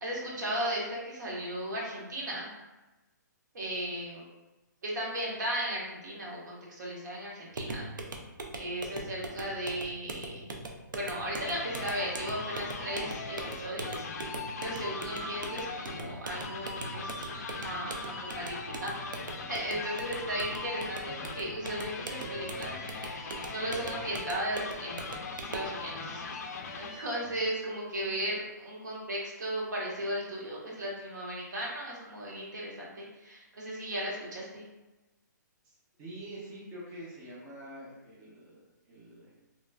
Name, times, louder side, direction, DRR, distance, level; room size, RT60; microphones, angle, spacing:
voice 1, 0.0-2.5 3.5-4.2 4.8-7.9 8.5-10.5 10.9-14.1 14.6-17.1 17.6-19.0 19.3-25.0 25.5-26.2 26.8-34.7, right 1 dB, 65° right, -4 dB, 1.0 m, -36 dB
sound 1, 7.5-25.8, right 2 dB, 85° right, 0.4 m, -41 dB
sound 2, 10.9-27.5, left 3 dB, 55° left, 0.4 m, -40 dB
voice 2, 28.0-28.4 35.6-35.7 36.0-39.3, right 1 dB, 20° right, -7 dB, 0.5 m, -47 dB
2.9 x 2.4 x 2.2 m, 1.1 s
hypercardioid pair, 155°, 10 cm